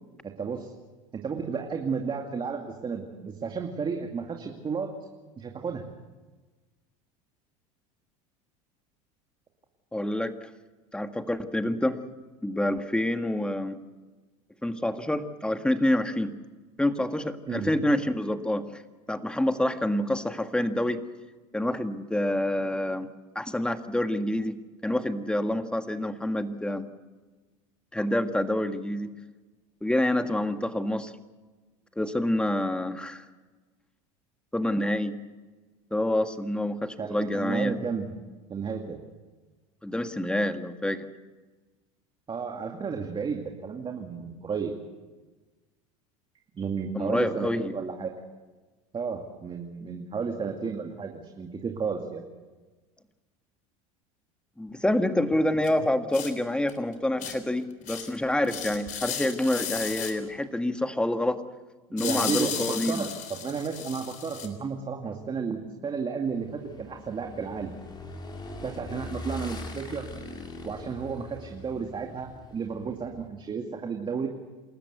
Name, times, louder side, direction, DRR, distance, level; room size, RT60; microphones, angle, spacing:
voice 1, 0.2-0.7 1.1-5.1 5.4-5.8 17.5-17.7 37.0-38.2 38.5-39.0 42.3-44.7 46.5-48.1 48.9-52.2 62.0-67.7 68.6-70.1 70.6-74.3, right 5 dB, 30° right, 2 dB, 2.3 m, -32 dB
voice 2, 9.9-10.4 10.9-12.0 12.4-13.8 14.6-16.3 16.8-18.8 19.1-21.0 21.5-23.1 23.3-24.6 24.8-26.8 27.9-29.1 29.8-31.1 32.0-33.2 34.5-35.1 35.9-37.7 39.8-41.1 46.9-47.7 54.6-61.4 61.9-63.1, left 1 dB, 5° left, 8 dB, 1.6 m, -27 dB
sound 1, 55.6-55.7 56.1-56.3 56.7-56.8 57.2-57.4 57.9-58.2 58.4-60.1 62.0-64.5, left 9 dB, 50° left, 3.6 m, -34 dB
Motorcycle / Engine, 66.3-73.3, left 2 dB, 25° left, 4.3 m, -42 dB
28.5 x 13.5 x 8.2 m, 1.3 s
hypercardioid pair, 90°, 17 cm